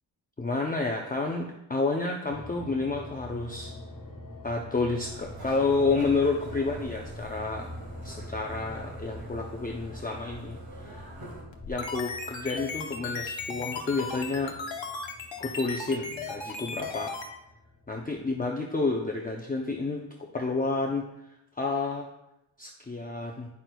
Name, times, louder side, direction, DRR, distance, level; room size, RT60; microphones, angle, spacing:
voice 1, 0.4-3.7 4.4-7.7 8.0-11.1 11.7-14.6 15.4-17.2 17.9-21.1 21.6-22.1 22.6-23.5, left 3 dB, 20° left, 0 dB, 0.5 m, -30 dB
sound 1, 2.3-18.4, left 1 dB, 50° left, 1.3 m, -45 dB
sound 2, 5.1-11.4, right 1 dB, 55° right, 1.8 m, -46 dB
sound 3, 11.5-17.3, left 4 dB, 75° left, 0.9 m, -36 dB
9.6 x 5.9 x 2.3 m, 0.86 s
wide cardioid pair, 130°, 45 cm